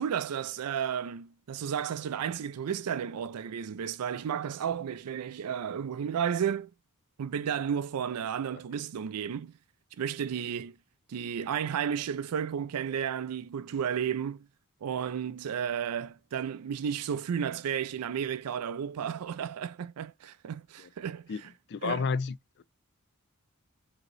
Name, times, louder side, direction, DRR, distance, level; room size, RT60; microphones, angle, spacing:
voice 1, 0.0-6.7 7.2-9.5 10.0-10.8 11.1-14.5 14.8-21.5 21.8-22.0, right 8 dB, 85° right, 0.4 m, -33 dB
voice 2, 21.7-22.6, left 5 dB, 50° left, 0.4 m, -31 dB
5.1 x 2.8 x 2.9 m
head